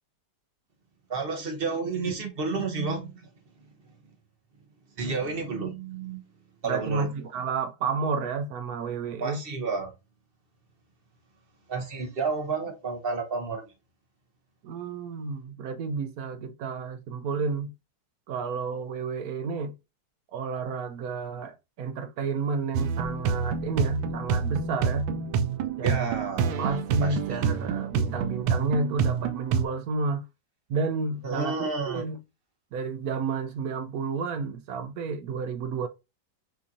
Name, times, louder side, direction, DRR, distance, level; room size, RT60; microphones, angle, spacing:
voice 1, 1.1-3.1 5.0-6.2 6.6-7.1 9.2-9.9 11.7-13.7 25.8-26.6 27.0-27.5 31.2-32.0, right 4 dB, 40° right, 0.9 m, -31 dB
voice 2, 6.6-9.4 14.6-17.7 18.3-19.7 20.3-25.1 25.8-26.2 26.6-30.3 30.7-32.2 32.7-35.9, right 4 dB, 70° right, 0.9 m, -31 dB
Invisible world - Base track (electro pop), 22.7-29.6, right 6 dB, 85° right, 1.4 m, -27 dB
6.1 x 2.8 x 2.6 m
omnidirectional pair, 2.0 m